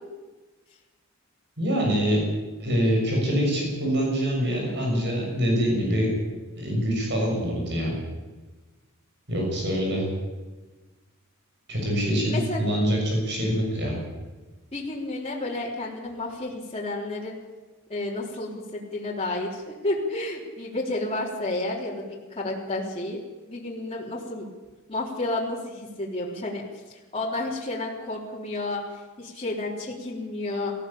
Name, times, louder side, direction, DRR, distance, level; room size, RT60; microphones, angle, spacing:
voice 1, 1.6-2.2 2.6-6.1 6.5-7.9 9.3-10.1 11.7-14.0, equal, 55° right, 0 dB, 6.6 m, -25 dB
voice 2, 12.2-12.6 14.7-17.4 17.9-23.2 23.5-24.5 24.9-30.7, left 2 dB, 30° left, -4 dB, 3.7 m, -31 dB
19.0 x 15.5 x 8.6 m, 1.3 s
head